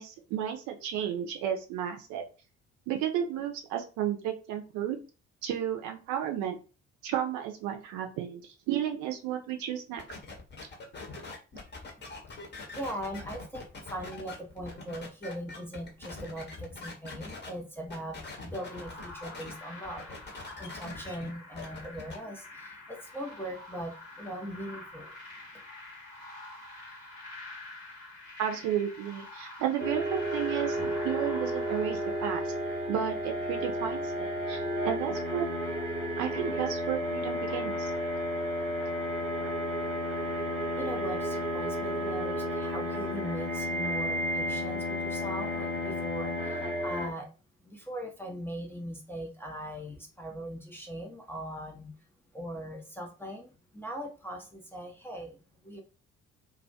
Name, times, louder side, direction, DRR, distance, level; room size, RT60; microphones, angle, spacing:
voice 1, 0.0-2.2 2.9-5.0 5.4-6.6 7.0-10.0 28.4-32.5 32.9-35.5 36.2-37.9, right 10 dB, 50° right, 4 dB, 0.6 m, -33 dB
sound 1, 10.0-17.5 17.9-19.5 19.8-22.2, left 3 dB, 30° left, 0.8 m, -43 dB
voice 2, 12.7-25.1 40.7-47.3 47.6-51.9 52.3-55.8, equal, 5° left, -1 dB, 0.5 m, -40 dB
sound 2, 18.5-32.9, left 2 dB, 75° left, 1.0 m, -46 dB
sound 3, 29.8-47.1, equal, 90° right, 0.7 m, -32 dB
2.2 x 2.1 x 2.7 m, 0.33 s
figure-of-eight pair, 45°, 38 cm